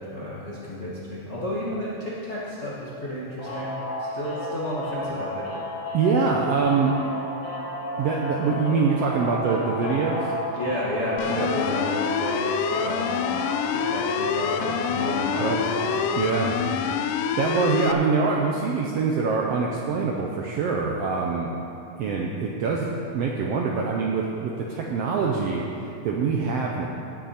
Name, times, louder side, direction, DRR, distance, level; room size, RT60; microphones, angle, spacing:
voice 1, 0.0-5.5 10.6-12.4 12.7-16.0 16.3-16.9, left 1 dB, 70° left, -7 dB, 0.6 m, -32 dB
sound 1, 3.4-16.1, left 1 dB, 50° left, 2.3 m, -32 dB
voice 2, 5.9-7.0 8.0-10.3 11.3-11.5 15.4-15.6 16.2-16.5 17.3-21.5 22.0-22.9 23.1-25.7 26.0-26.9, right 5 dB, 80° right, -1 dB, 1.4 m, -24 dB
sound 2, 11.2-17.9, left 8 dB, 90° left, 2.2 m, -27 dB
17.5 x 6.5 x 4.3 m, 2.6 s
omnidirectional pair, 3.6 m